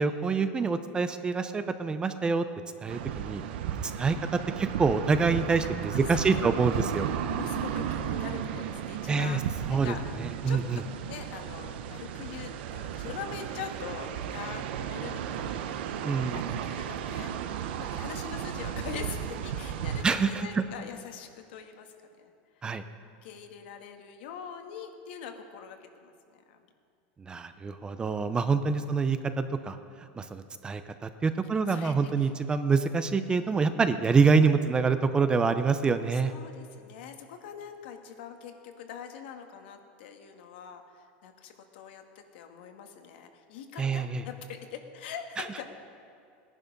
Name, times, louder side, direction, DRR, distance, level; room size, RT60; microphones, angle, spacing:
voice 1, 0.0-2.5 2.8-3.4 4.0-7.1 9.1-9.4 9.7-9.9 10.4-10.8 16.0-16.5 20.0-20.6 22.6-22.8 27.3-29.8 30.2-36.3 43.8-44.2, right 4 dB, 15° right, 10 dB, 0.6 m, -26 dB
sound 1, 2.9-20.0, right 9 dB, 75° right, 0.9 m, -34 dB
voice 2, 5.9-10.2 10.5-15.6 16.3-17.3 17.7-22.3 23.2-26.6 28.7-29.0 31.5-32.3 36.1-42.0 42.3-45.7, left 7 dB, 75° left, 5 dB, 1.6 m, -43 dB
17.5 x 11.0 x 5.3 m, 2.4 s
supercardioid pair, 150°, 6 cm